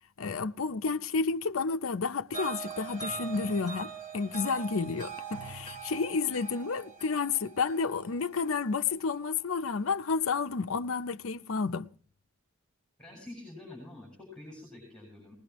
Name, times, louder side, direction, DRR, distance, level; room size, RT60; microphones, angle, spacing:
voice 1, 0.2-11.9, left 4 dB, 70° left, 0.7 m, -31 dB
sound 1, 2.3-9.5, right 6 dB, 35° right, 3.3 m, -42 dB
voice 2, 13.0-15.3, left 2 dB, 5° left, 7.2 m, -47 dB
20.5 x 20.0 x 3.0 m
head